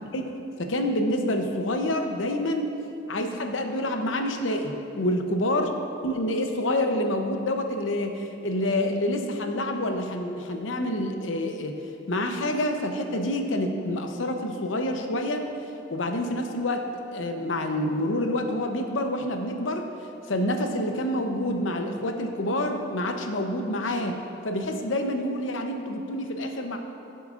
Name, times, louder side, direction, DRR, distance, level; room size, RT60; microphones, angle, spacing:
voice 1, 0.6-2.7 3.1-5.7 6.0-11.8 12.1-15.5 15.9-16.9 17.1-19.9 20.3-24.2 24.4-26.8, left 1 dB, 90° left, 5 dB, 0.8 m, -27 dB
16.0 x 7.0 x 2.5 m, 2.7 s
head